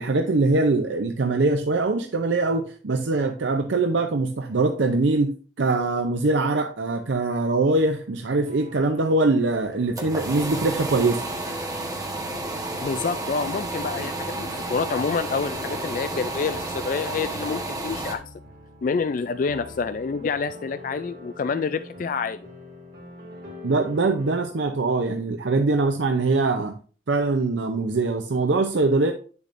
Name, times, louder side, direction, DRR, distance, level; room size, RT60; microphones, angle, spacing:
voice 1, 0.0-11.2 23.6-26.7 27.1-29.1, right 3 dB, 80° right, 0.6 m, -23 dB
sound 1, 8.5-24.4, left 1 dB, 50° right, 2.4 m, -44 dB
sound 2, 9.6-18.1, right 2 dB, 20° right, 1.2 m, -31 dB
voice 2, 12.8-18.2 18.8-22.5, left 5 dB, 45° left, 0.3 m, -28 dB
9.9 x 7.0 x 2.6 m
head